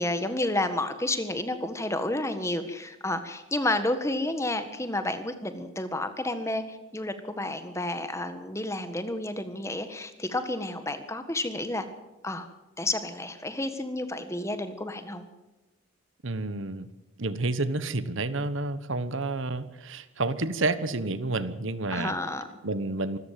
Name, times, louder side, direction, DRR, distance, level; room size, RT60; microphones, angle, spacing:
voice 1, 0.0-11.8 12.2-12.5 12.8-15.2 21.9-22.5, left 1 dB, 15° left, 9 dB, 1.6 m, -30 dB
voice 2, 16.2-16.9 17.2-22.2 22.6-23.2, right 2 dB, 65° right, 14 dB, 1.2 m, -30 dB
25.5 x 13.5 x 7.6 m, 1.1 s
head